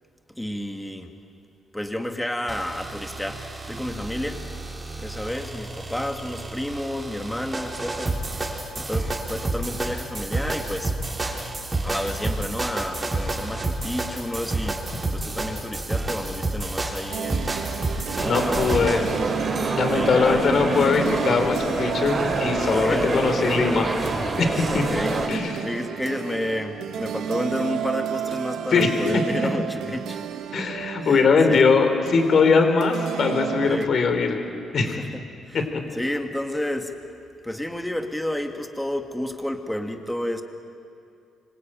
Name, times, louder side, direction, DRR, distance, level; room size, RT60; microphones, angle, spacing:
voice 1, 0.3-1.1 1.7-4.4 5.0-8.2 8.8-11.0 11.8-17.5 18.0-19.5 19.9-20.5 22.7-23.2 24.7-25.2 25.6-30.2 30.6-30.7 31.0-31.2 31.5-31.7 33.6-33.9 34.9-35.1 35.5-35.6 35.9-36.9 37.4-40.4, left 1 dB, 5° left, 4 dB, 2.2 m, -31 dB
sound 1, 2.5-19.2, right 2 dB, 25° right, 4.5 m, -30 dB
sound 2, 17.1-33.9, right 9 dB, 75° right, 1.2 m, -32 dB
voice 2, 18.2-19.0 19.7-23.9 24.4-24.8 25.3-25.5 28.7-28.9 29.4-29.5 30.5-34.4 34.7-35.0 35.5-35.6, left 5 dB, 55° left, 5 dB, 4.4 m, -21 dB
sound 3, 18.2-25.3, right 2 dB, 40° right, 5.2 m, -26 dB
25.0 x 25.0 x 9.3 m, 2.5 s
cardioid pair, 90°, 0 cm